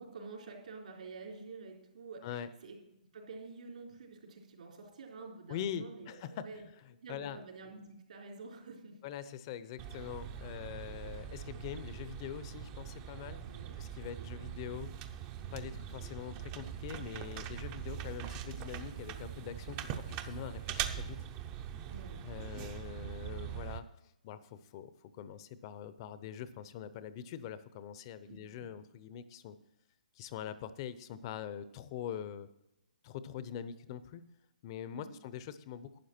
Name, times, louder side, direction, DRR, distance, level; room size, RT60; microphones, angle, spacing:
voice 1, 0.0-2.8 3.1-6.7 7.0-9.0 13.4-13.8 14.2-14.5 21.8-22.2 28.3-28.7 34.9-35.1, right 4 dB, 65° right, 0 dB, 3.7 m, -49 dB
voice 2, 5.5-6.7 7.1-7.4 9.0-13.5 13.8-14.9 15.5-21.2 22.2-23.8 24.2-29.6 30.2-32.5 33.0-34.2 34.6-36.0, left 9 dB, 35° left, 14 dB, 0.7 m, -43 dB
sound 1, 9.8-23.8, right 9 dB, 25° right, 0.7 m, -42 dB
12.0 x 9.0 x 4.4 m, 0.87 s
hypercardioid pair, 150°, 4 cm